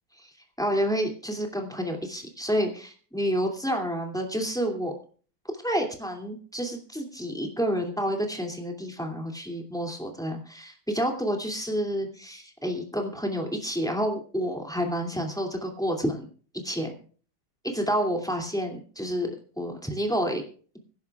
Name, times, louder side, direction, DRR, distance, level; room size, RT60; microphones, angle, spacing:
voice 1, 0.6-4.9 5.6-16.3 16.6-16.9 17.6-19.3 19.6-20.4, equal, ahead, 2 dB, 2.3 m, -29 dB
24.5 x 11.0 x 2.4 m, 0.42 s
omnidirectional pair, 2.1 m